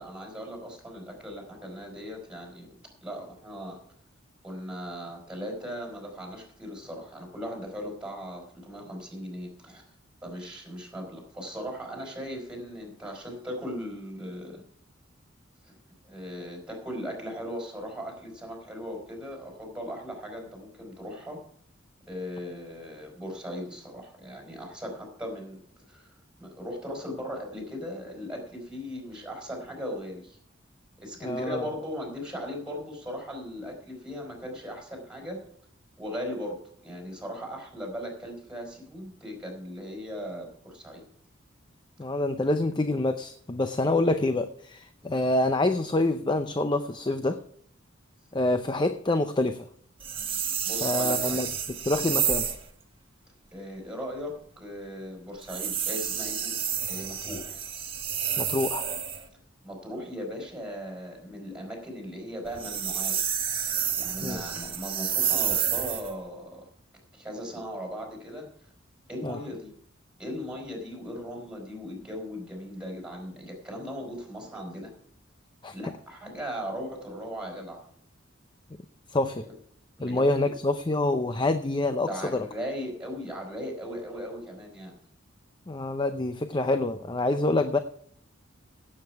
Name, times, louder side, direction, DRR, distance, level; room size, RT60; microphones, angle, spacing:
voice 1, 0.0-2.7 3.0-3.8 4.4-9.8 10.2-14.6 15.6-15.7 16.0-21.4 22.1-25.6 25.9-26.1 26.4-30.4 31.0-35.4 36.0-41.0 50.6-51.4 53.5-56.5 56.9-57.6 59.6-63.2 63.6-66.7 67.1-68.7 69.1-69.7 70.2-74.9 75.7-77.8 80.0-80.5 82.0-85.0, equal, 5° right, 1 dB, 4.5 m, -38 dB
voice 2, 31.2-31.7 42.0-47.4 48.3-49.7 50.8-51.5 51.9-52.5 58.4-58.9 64.2-64.4 69.2-69.4 75.6-75.7 79.1-79.4 80.0-82.5 85.7-87.8, left 2 dB, 25° left, 9 dB, 0.6 m, -26 dB
sound 1, 50.0-52.7 55.4-59.3 62.5-66.1, right 8 dB, 25° right, 1.5 m, -29 dB
16.5 x 8.1 x 4.7 m, 0.62 s
head